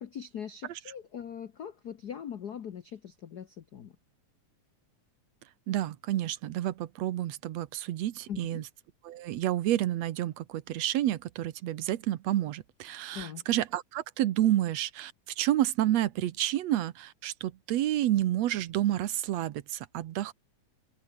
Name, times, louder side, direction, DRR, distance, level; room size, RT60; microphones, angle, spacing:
voice 1, 0.0-4.0 8.3-8.6 13.1-13.4, left 8 dB, 80° left, 0.8 m, -41 dB
voice 2, 5.7-8.6 9.0-20.3, right 13 dB, 70° right, 2.1 m, -29 dB
omnidirectional pair, 3.3 m